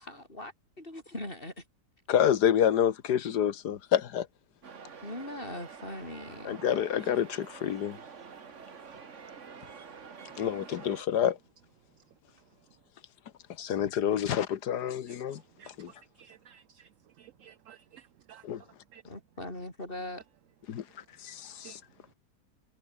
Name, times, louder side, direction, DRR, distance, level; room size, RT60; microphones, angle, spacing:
voice 1, 0.0-1.6 5.0-6.6 19.1-20.2, left 1 dB, 30° left, 7.6 m, -41 dB
voice 2, 2.1-4.3 6.4-8.0 10.4-11.4 13.6-15.4 15.8-15.9 18.4-18.6 20.7-20.8 21.2-21.8, left 9 dB, 75° left, 1.6 m, -28 dB
sound 1, 4.6-11.0, right 6 dB, 45° right, 1.8 m, -47 dB
voice 3, 16.2-16.9 17.2-18.4 18.9-19.0 21.6-21.8, right 10 dB, 65° right, 0.8 m, -54 dB
omnidirectional pair, 1.8 m